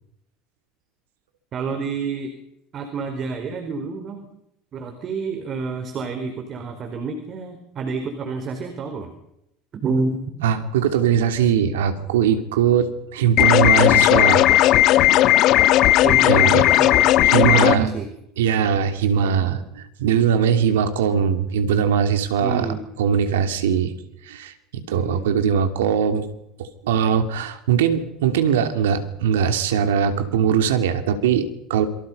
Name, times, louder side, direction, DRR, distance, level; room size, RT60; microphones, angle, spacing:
voice 1, 1.5-2.3 2.7-4.4 4.7-9.1 9.8-10.4 16.0-18.1 19.1-19.6 22.4-22.8 24.9-25.3, right 4 dB, 45° right, 6 dB, 4.6 m, -29 dB
voice 2, 10.4-14.5 16.3-16.6 17.2-17.9 18.4-22.7 23.0-23.9 24.2-26.3 26.6-31.9, right 8 dB, 80° right, 7 dB, 2.8 m, -21 dB
sound 1, 13.4-17.8, left 14 dB, 60° left, 1.4 m, -15 dB
28.0 x 24.0 x 5.6 m, 0.82 s
hypercardioid pair, 75°, 0 cm